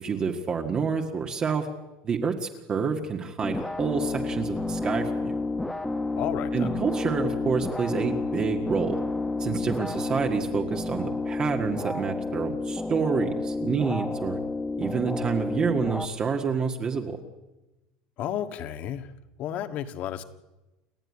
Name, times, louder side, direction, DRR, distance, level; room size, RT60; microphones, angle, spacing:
voice 1, 0.0-1.7 2.0-5.4 6.5-9.0 9.4-14.4 14.8-17.2, right 5 dB, 25° right, 3 dB, 1.7 m, -28 dB
sound 1, 3.4-16.1, left 3 dB, 5° left, 1.2 m, -30 dB
voice 2, 6.2-6.8 18.2-19.1 19.4-20.2, left 11 dB, 45° left, 10 dB, 1.8 m, -32 dB
29.5 x 13.5 x 9.8 m, 1.0 s
cardioid pair, 150°, 3 cm